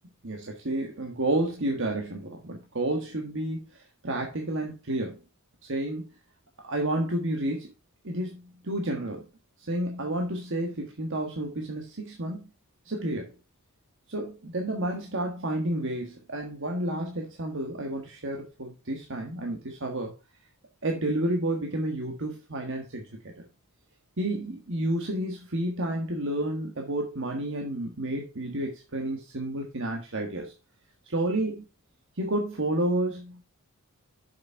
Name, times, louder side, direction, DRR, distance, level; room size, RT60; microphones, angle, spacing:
voice 1, 0.2-5.2 5.6-6.0 6.6-7.7 8.0-9.2 9.6-12.4 12.8-13.3 14.1-20.1 20.8-23.1 23.3-23.4 24.2-30.5 31.0-31.6 32.2-33.4, right 1 dB, 55° right, 2 dB, 1.5 m, -30 dB
7.1 x 6.6 x 4.5 m, 0.28 s
head